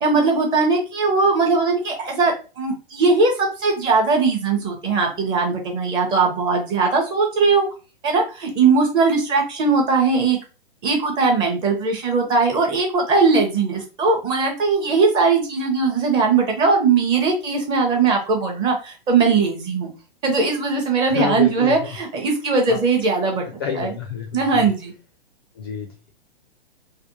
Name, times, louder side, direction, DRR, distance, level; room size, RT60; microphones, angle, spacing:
voice 1, 0.0-7.7 8.0-10.4 10.8-19.9 20.2-23.4 23.7-24.0 24.3-24.9, right 4 dB, 15° right, 2 dB, 0.7 m, -19 dB
voice 2, 21.1-21.9 22.7-22.8 23.6-24.7 25.6-25.9, left 6 dB, 25° left, 3 dB, 0.4 m, -28 dB
3.3 x 2.1 x 2.8 m, 0.32 s
figure-of-eight pair, 115°, 30 cm